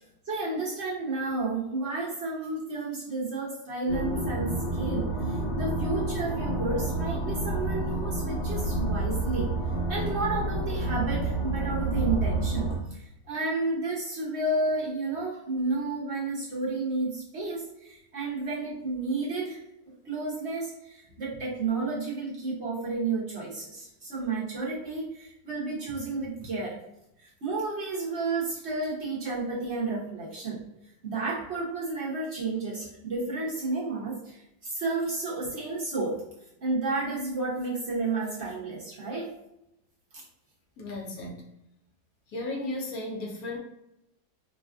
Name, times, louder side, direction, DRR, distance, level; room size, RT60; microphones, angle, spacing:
voice 1, 0.2-9.5 9.9-19.6 20.0-26.8 27.2-30.6 31.0-36.2 36.6-39.3 40.1-40.2, right 3 dB, 50° right, -6 dB, 0.9 m, -31 dB
sound 1, 3.9-12.8, right 2 dB, 85° left, 1.6 m, -29 dB
voice 2, 40.8-41.4 42.3-43.6, left 2 dB, 60° left, -1 dB, 1.0 m, -34 dB
4.9 x 2.3 x 2.4 m, 0.85 s
omnidirectional pair, 2.0 m